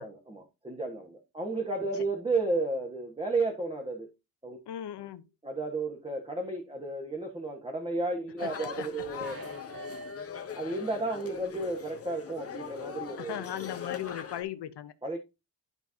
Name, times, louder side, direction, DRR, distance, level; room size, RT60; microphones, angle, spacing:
voice 1, 0.0-4.1 4.4-4.6 5.4-9.4 10.5-13.4 15.0-15.2, right 2 dB, 15° right, 1.4 m, -33 dB
voice 2, 4.7-5.3 8.4-9.1 13.2-14.9, left 11 dB, 75° left, 0.9 m, -38 dB
sound 1, 8.4-14.4, left 7 dB, 35° left, 1.0 m, -41 dB
sound 2, 9.2-11.0 11.4-11.5, right 1 dB, 60° right, 0.8 m, -46 dB
12.0 x 4.5 x 2.8 m
wide cardioid pair, 125°, 40 cm